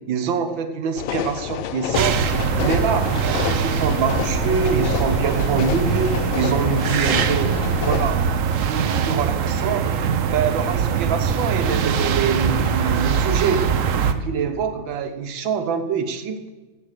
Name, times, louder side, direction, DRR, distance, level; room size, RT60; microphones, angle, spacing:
voice 1, 0.1-2.2 2.6-8.3 8.6-9.9 10.2-13.7 14.0-16.4, right 6 dB, 80° right, 8 dB, 1.9 m, -25 dB
sound 1, 1.0-8.1, left 11 dB, 80° left, 1.3 m, -29 dB
sound 2, 1.9-8.3, left 2 dB, 35° left, 0.6 m, -34 dB
sound 3, 1.9-14.1, right 7 dB, 60° right, 0.9 m, -22 dB
14.5 x 8.6 x 6.6 m, 1.2 s
omnidirectional pair, 2.1 m